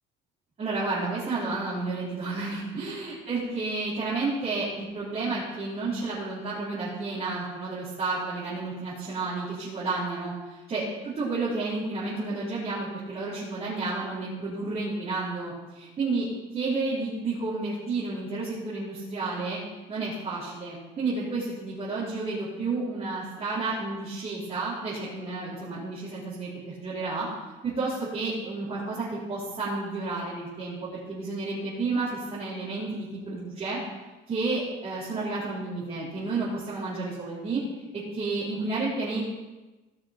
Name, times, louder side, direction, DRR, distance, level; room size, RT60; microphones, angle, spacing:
voice 1, 0.6-16.3 16.5-19.6 19.9-27.3 27.6-33.8 34.3-37.6 37.9-39.2, right 3 dB, 30° right, -11 dB, 4.1 m, -31 dB
17.0 x 6.6 x 4.5 m, 1.2 s
cardioid pair, 160°, 20 cm